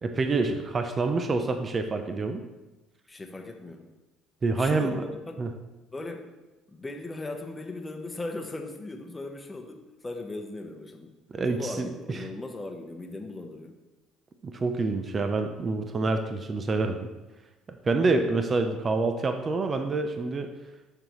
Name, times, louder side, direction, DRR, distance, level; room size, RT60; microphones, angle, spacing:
voice 1, 0.0-2.4 4.4-5.0 5.4-5.5 11.3-12.2 14.4-17.1 17.9-20.5, right 3 dB, 30° right, 6 dB, 0.6 m, -27 dB
voice 2, 3.1-3.8 4.6-5.5 5.9-6.3 6.7-11.1 11.4-13.7, left 2 dB, 15° left, 3 dB, 0.9 m, -38 dB
11.5 x 3.9 x 3.1 m, 1.1 s
cardioid pair, 100°, 0 cm